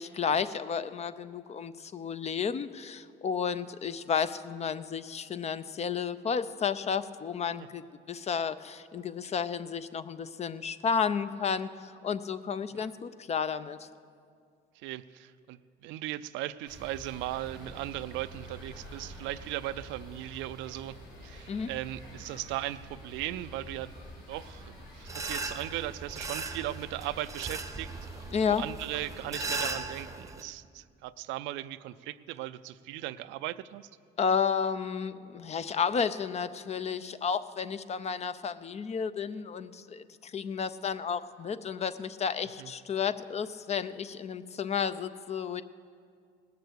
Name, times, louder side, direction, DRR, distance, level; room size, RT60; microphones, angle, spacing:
voice 1, 0.0-13.9 21.5-21.7 28.3-28.6 34.2-45.6, left 6 dB, 35° left, 14 dB, 0.5 m, -32 dB
voice 2, 14.8-21.0 21.2-23.9 24.3-27.9 28.5-33.9 42.6-42.7, right 15 dB, 85° right, 14 dB, 0.4 m, -38 dB
Playground Planten un Blomen, 16.7-29.8, equal, 85° left, 4.1 m, -48 dB
sound 1, 25.1-30.4, right 3 dB, 15° right, 0.8 m, -38 dB
18.0 x 6.7 x 8.1 m, 2.2 s
cardioid pair, 100°, 19 cm